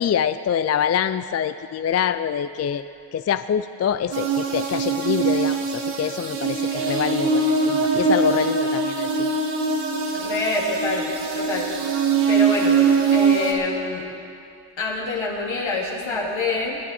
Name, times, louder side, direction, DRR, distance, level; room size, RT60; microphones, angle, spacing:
voice 1, 0.0-2.8 3.1-9.3, left 8 dB, 35° left, 12 dB, 0.4 m, -25 dB
sound 1, 4.1-13.5, right 5 dB, 90° right, 1.6 m, -22 dB
voice 2, 10.1-11.7 12.3-12.9 13.1-14.1 14.8-16.8, left 3 dB, 65° left, -2 dB, 2.6 m, -26 dB
21.5 x 9.4 x 4.3 m, 2.5 s
supercardioid pair, 45°, 49 cm